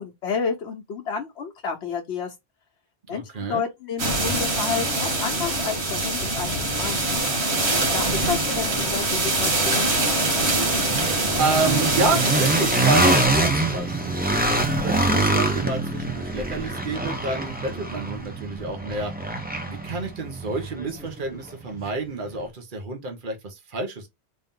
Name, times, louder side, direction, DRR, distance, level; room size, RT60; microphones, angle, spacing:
voice 1, 0.0-2.3 3.1-7.1 7.9-9.9, left 6 dB, 85° left, 1.0 m, -30 dB
voice 2, 3.1-3.7 7.8-8.4 11.4-14.4 14.8-19.1 19.7-24.1, right 3 dB, 50° right, 1.2 m, -29 dB
sound 1, 4.0-13.3, right 2 dB, 90° right, 1.8 m, -24 dB
sound 2, 5.4-5.5 5.9-21.9, right 2 dB, 10° right, 0.6 m, -26 dB
3.5 x 2.7 x 3.6 m
omnidirectional pair, 1.1 m